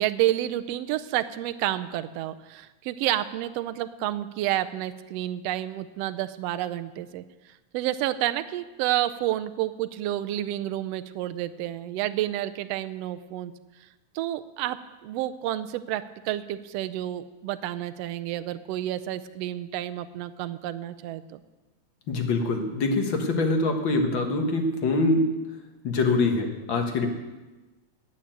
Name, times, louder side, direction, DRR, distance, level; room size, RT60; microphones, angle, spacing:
voice 1, 0.0-7.2 7.7-13.5 14.1-14.8 15.0-21.4, right 13 dB, 80° right, 11 dB, 1.4 m, -30 dB
voice 2, 22.1-25.3 25.8-27.1, left 2 dB, 50° left, 4 dB, 1.8 m, -24 dB
10.0 x 8.6 x 9.0 m, 1.1 s
omnidirectional pair, 3.4 m